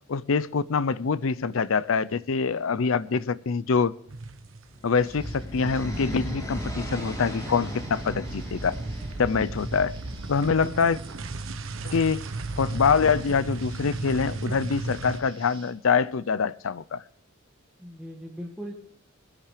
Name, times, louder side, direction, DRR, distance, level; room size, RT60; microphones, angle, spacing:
voice 1, 0.1-4.0 4.8-8.8 9.2-10.0 10.3-11.0 11.8-12.3 12.6-17.0, left 5 dB, 70° left, 0.5 m, -25 dB
sound 1, 4.1-4.9 5.1-15.2, right 2 dB, 70° right, 0.9 m, -35 dB
sound 2, 4.7-10.7, equal, 20° left, 3.8 m, -37 dB
sound 3, 5.0-15.7, right 4 dB, 25° right, 2.5 m, -52 dB
voice 2, 10.4-11.1 17.8-18.7, equal, 5° right, 1.7 m, -40 dB
21.0 x 10.5 x 3.3 m
head